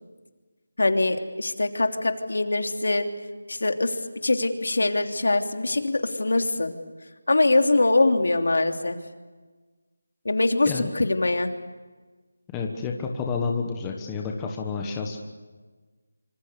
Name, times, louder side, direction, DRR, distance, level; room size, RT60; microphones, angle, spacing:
voice 1, 0.8-3.1 3.5-3.9 4.2-6.7 7.3-9.0 10.2-11.5, left 2 dB, 75° left, 5 dB, 3.0 m, -23 dB
voice 2, 12.5-15.2, left 5 dB, 10° left, 1 dB, 1.3 m, -29 dB
26.5 x 25.5 x 6.8 m, 1.3 s
figure-of-eight pair, 180°, 0 cm